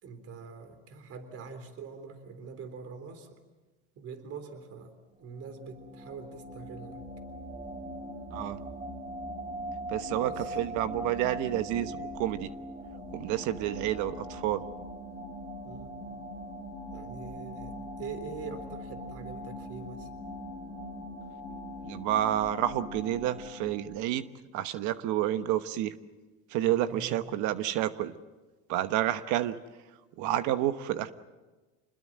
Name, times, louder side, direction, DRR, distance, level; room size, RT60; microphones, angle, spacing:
voice 1, 0.0-3.4 4.0-4.9 5.2-7.0 10.2-10.6 15.6-16.0 16.9-20.1 26.7-27.3, right 5 dB, 45° right, 9 dB, 3.7 m, -44 dB
sound 1, 5.2-24.2, equal, 25° right, 3.7 m, -41 dB
voice 2, 9.9-12.5 13.1-14.6 21.8-24.3 24.5-26.0 26.5-28.1 28.7-29.6 30.2-31.1, right 13 dB, 70° right, 12 dB, 1.2 m, -29 dB
27.0 x 21.0 x 7.5 m, 1.2 s
supercardioid pair, 110°, 31 cm